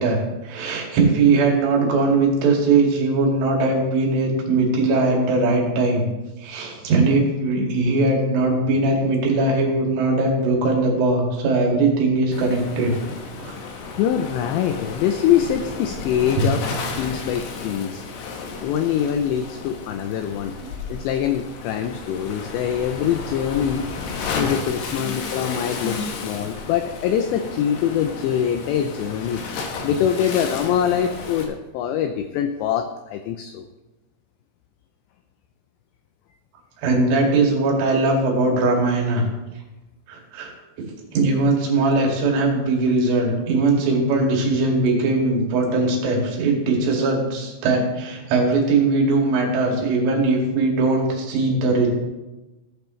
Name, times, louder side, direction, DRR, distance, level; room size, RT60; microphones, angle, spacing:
voice 1, 0.0-6.1 6.4-12.9 13.4-13.6 16.4-16.5 25.0-25.1 25.8-26.0 36.8-39.3 40.1-40.5 41.1-51.9, right 3 dB, 75° right, -1 dB, 4.6 m, -20 dB
Waves surf, 12.3-31.4, left 4 dB, 70° left, 2.7 m, -33 dB
voice 2, 14.0-16.6 17.0-18.0 18.6-20.5 20.9-23.9 24.3-29.4 29.8-33.7, left 9 dB, 85° left, 7 dB, 2.5 m, -24 dB
16.0 x 8.7 x 3.2 m, 1.1 s
omnidirectional pair, 5.7 m